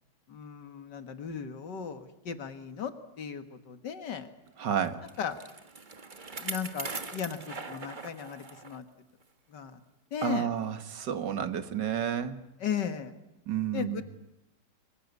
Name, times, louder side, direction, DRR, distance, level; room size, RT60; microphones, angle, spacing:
voice 1, 0.3-4.3 5.2-5.4 6.4-8.9 9.5-9.8 10.1-10.5 12.6-13.1 13.7-14.0, left 7 dB, 80° left, 9 dB, 2.2 m, -36 dB
voice 2, 4.6-5.0 10.2-12.4 13.5-14.0, right 9 dB, 85° right, 10 dB, 2.2 m, -31 dB
Bicycle, 4.8-8.8 9.2-9.3 10.1-10.2, right 4 dB, 30° right, 1.4 m, -41 dB
25.0 x 22.5 x 9.5 m, 0.90 s
omnidirectional pair, 1.8 m